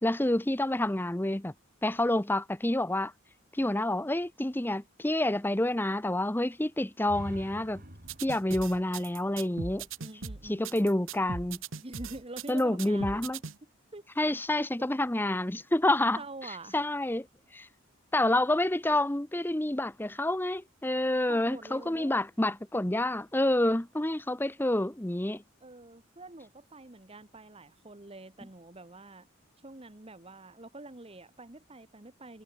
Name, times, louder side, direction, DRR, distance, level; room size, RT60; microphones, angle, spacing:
voice 1, 0.0-1.5 1.8-3.1 3.5-7.8 8.2-9.9 10.4-11.6 12.5-13.4 14.2-16.2 16.5-17.3 17.5-17.7 18.1-25.4, left 1 dB, 10° left, 0.7 m, -28 dB
sound 1, 7.0-10.9, equal, 45° right, 7.5 m, -48 dB
sound 2, 8.0-13.6, right 5 dB, 65° right, 1.4 m, -39 dB
voice 2, 10.0-10.6 11.8-13.2 13.6-14.0 16.2-16.8 21.3-22.1 25.6-29.3 29.6-32.4, right 2 dB, 25° right, 1.3 m, -46 dB
head